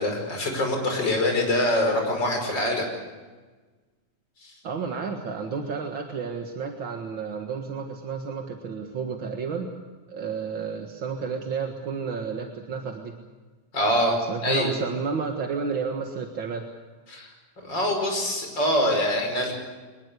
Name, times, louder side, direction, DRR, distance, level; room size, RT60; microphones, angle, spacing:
voice 1, 0.0-2.8 4.4-4.5 13.7-14.7 17.1-17.3 17.6-19.5, left 1 dB, 30° left, 2 dB, 5.9 m, -24 dB
voice 2, 4.6-9.7 10.1-13.1 14.3-16.7, right 5 dB, 45° right, 3 dB, 1.8 m, -31 dB
23.5 x 21.0 x 8.2 m, 1.3 s
omnidirectional pair, 4.0 m